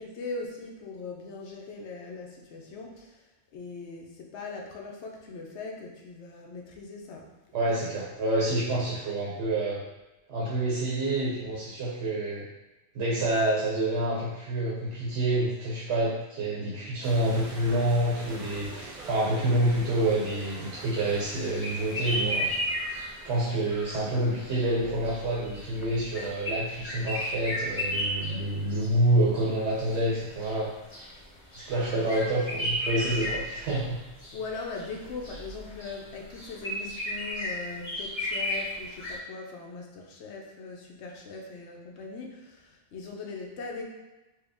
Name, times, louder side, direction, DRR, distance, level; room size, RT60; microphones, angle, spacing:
voice 1, 0.0-7.3 7.7-7.8 32.0-32.2 34.3-43.8, left 4 dB, 80° left, 0 dB, 0.9 m, -40 dB
voice 2, 7.5-9.8 10.3-12.4 12.9-22.5 23.2-30.7 31.6-34.0, right 1 dB, 85° right, -6 dB, 1.0 m, -27 dB
sound 1, 17.0-23.5, right 2 dB, 55° right, 0.7 m, -44 dB
sound 2, 20.9-39.2, equal, 35° left, 1.2 m, -34 dB
4.6 x 2.1 x 3.4 m, 1.0 s
omnidirectional pair, 1.1 m